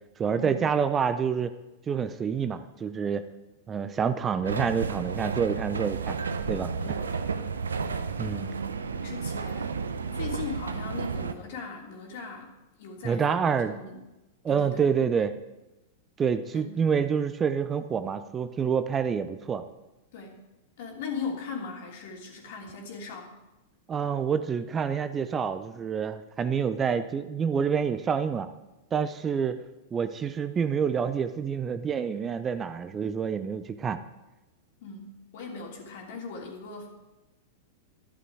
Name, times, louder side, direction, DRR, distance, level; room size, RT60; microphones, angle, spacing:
voice 1, 0.2-1.5 1.9-3.2 3.7-6.2 6.5-6.7 8.2-8.5 13.0-13.7 14.4-15.3 16.2-19.6 23.9-28.5 28.9-29.6 29.9-34.0, right 6 dB, 25° right, 11 dB, 0.7 m, -27 dB
sound 1, 4.4-11.3, right 5 dB, 80° right, 0.8 m, -32 dB
voice 2, 6.8-7.3 8.2-14.0 14.5-14.9 16.5-16.7 20.1-20.4 20.8-23.3 34.8-36.9, left 4 dB, 55° left, 1 dB, 3.3 m, -39 dB
12.5 x 11.0 x 4.8 m, 1.0 s
figure-of-eight pair, 95°, 0 cm